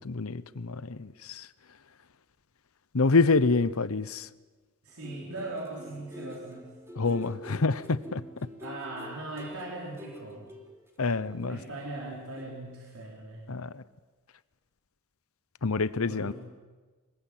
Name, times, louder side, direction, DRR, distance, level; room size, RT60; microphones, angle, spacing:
voice 1, 0.0-1.5 2.9-4.3 6.9-8.5 11.0-11.6 13.5-13.8 15.6-16.3, left 3 dB, 70° left, 16 dB, 0.8 m, -27 dB
voice 2, 4.8-6.7 8.6-10.5 11.5-13.5 16.1-16.3, right 2 dB, 70° right, -3 dB, 4.8 m, -39 dB
sound 1, 4.9-12.1 12.4-12.6, equal, 10° right, 3.0 m, -47 dB
24.0 x 21.5 x 8.9 m, 1.3 s
head